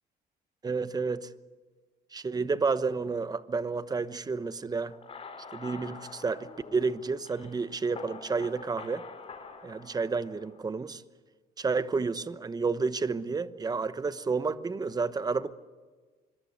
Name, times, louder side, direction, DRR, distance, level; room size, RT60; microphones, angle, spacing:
voice 1, 0.6-1.3 2.1-4.9 5.5-9.1 9.6-11.0 11.6-15.6, right 4 dB, 25° right, 1.0 m, -30 dB
sound 1, 4.9-10.7, left 4 dB, 35° left, 4.5 m, -46 dB
26.0 x 22.0 x 8.1 m
cardioid pair, 110°, 17 cm